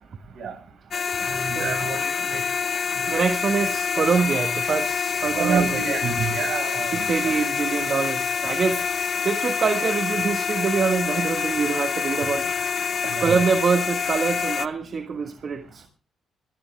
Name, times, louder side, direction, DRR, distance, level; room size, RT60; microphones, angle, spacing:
sound 1, 0.9-14.7, left 6 dB, 45° left, 0.7 m, -26 dB
voice 1, 1.2-2.4 5.3-7.0 13.0-13.4, right 6 dB, 65° right, 9 dB, 5.3 m, -28 dB
voice 2, 3.1-5.8 6.9-8.9 9.2-12.5 13.2-15.9, right 5 dB, 45° right, 7 dB, 1.4 m, -24 dB
18.5 x 14.0 x 3.4 m, 0.35 s
cardioid pair, 90°, 0 cm